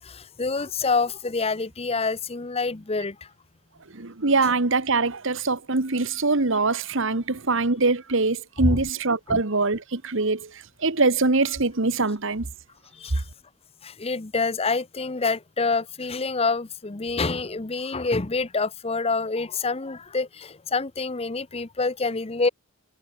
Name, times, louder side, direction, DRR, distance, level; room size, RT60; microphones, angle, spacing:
voice 1, 0.0-3.3 8.6-8.8 9.3-9.4 13.0-13.2 13.8-22.5, left 3 dB, 25° left, 0.7 m, -27 dB
voice 2, 3.9-10.5 10.8-12.5, right 3 dB, 60° right, 1.4 m, -23 dB
head